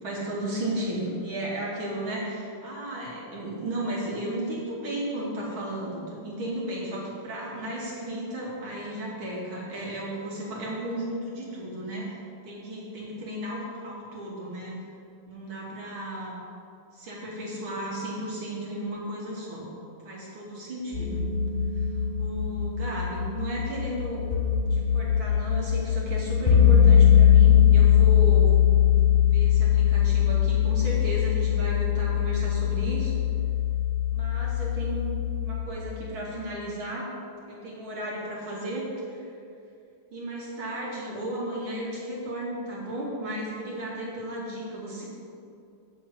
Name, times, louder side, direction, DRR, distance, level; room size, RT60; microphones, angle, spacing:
voice 1, 0.0-12.2 12.4-14.8 15.3-16.3 16.9-19.7 20.0-21.2 21.7-21.8 22.2-24.3 24.7-28.5 29.3-33.2 34.1-35.1 35.4-37.1 37.5-39.3 40.1-45.0, right 1 dB, 70° right, -5 dB, 3.3 m, -34 dB
sound 1, 20.9-35.6, left 9 dB, 30° left, 1.3 m, -21 dB
7.7 x 7.7 x 8.5 m, 2.5 s
omnidirectional pair, 2.3 m